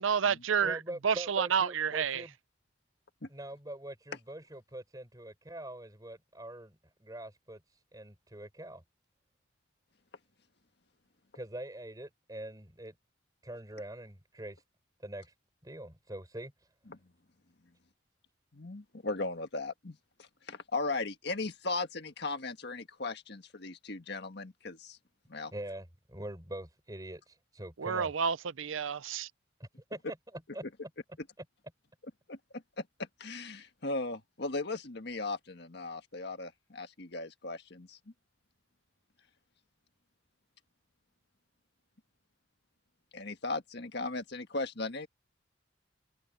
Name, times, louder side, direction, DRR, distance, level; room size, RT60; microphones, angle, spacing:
voice 1, 0.0-2.2 27.8-29.3, right 7 dB, 90° right, 0.6 m, -30 dB
voice 2, 0.6-2.3 3.3-7.6 7.9-8.8 11.3-12.9 13.4-14.6 15.0-15.3 15.6-16.5 25.5-28.1 29.6-30.2 30.5-30.6, right 1 dB, 20° right, 4.2 m, -43 dB
voice 3, 18.5-25.0 25.3-25.5 32.3-38.0 43.1-45.1, left 3 dB, 55° left, 1.7 m, -37 dB
head